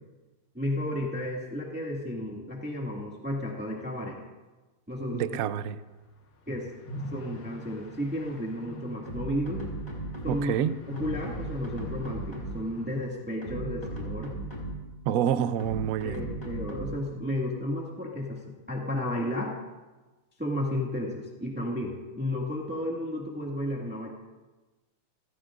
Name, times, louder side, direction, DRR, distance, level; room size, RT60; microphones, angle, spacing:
voice 1, 0.5-4.2 4.9-5.4 6.5-6.7 7.1-9.6 10.2-10.5 10.9-14.3 16.0-19.6 20.4-24.1, left 1 dB, 5° right, -3 dB, 1.8 m, -33 dB
voice 2, 5.1-5.8 10.3-10.8 15.0-16.2, right 9 dB, 75° right, 12 dB, 0.8 m, -27 dB
sound 1, 6.8-13.1, left 1 dB, 45° left, 1.8 m, -43 dB
sound 2, 9.1-10.6 11.0-12.8 13.3-14.9 15.6-17.1, right 2 dB, 30° left, 4.5 m, -37 dB
29.0 x 15.5 x 2.5 m, 1.2 s
omnidirectional pair, 2.3 m